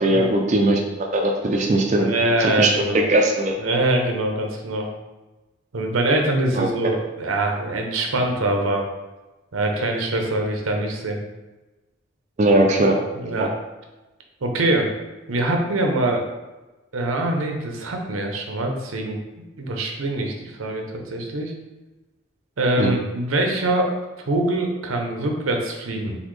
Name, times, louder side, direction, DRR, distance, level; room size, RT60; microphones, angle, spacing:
voice 1, 0.0-2.1 2.6-2.7 2.9-3.5 6.5-6.7 12.4-13.0 13.4-13.5 22.8-22.9, right 1 dB, 35° right, 1 dB, 0.4 m, -19 dB
voice 2, 2.0-3.0 3.6-4.9 5.7-8.9 9.5-11.2 13.2-13.5 14.4-14.9 15.3-16.3 16.9-19.2 19.6-21.5 22.6-23.9 24.3-26.2, right 1 dB, 90° right, 2 dB, 0.7 m, -23 dB
4.1 x 3.4 x 3.1 m, 1.1 s
head